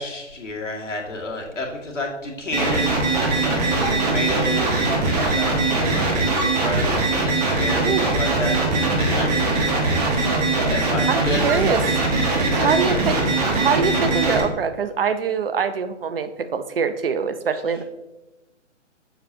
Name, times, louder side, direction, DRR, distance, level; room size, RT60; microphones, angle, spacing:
voice 1, 0.0-2.9 3.2-6.1 6.3-6.8 7.2-10.0 10.7-11.4 12.6-13.0, left 2 dB, 80° left, -1 dB, 2.1 m, -31 dB
sound 1, 2.5-14.4, right 2 dB, 35° right, 1.2 m, -21 dB
voice 2, 3.7-4.2 7.8-8.1 11.1-11.9 12.5-13.2 13.6-17.8, right 6 dB, 50° right, 10 dB, 0.6 m, -24 dB
7.0 x 6.8 x 2.7 m, 1.0 s
figure-of-eight pair, 135°, 36 cm